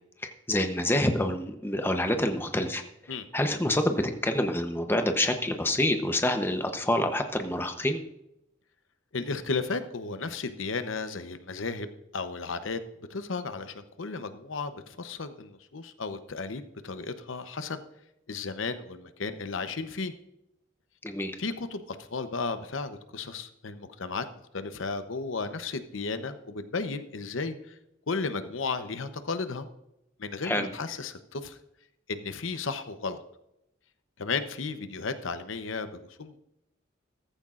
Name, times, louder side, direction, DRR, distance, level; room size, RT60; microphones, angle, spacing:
voice 1, 0.2-2.8 3.3-8.0 21.0-21.4 30.4-30.7, left 1 dB, 10° left, 6 dB, 0.8 m, -27 dB
voice 2, 9.1-12.8 13.1-17.8 18.3-20.1 21.4-24.2 24.5-27.7 28.1-29.7 30.2-31.6 32.1-33.2 34.2-36.4, left 4 dB, 90° left, 10 dB, 0.8 m, -34 dB
14.5 x 14.5 x 2.5 m, 0.84 s
head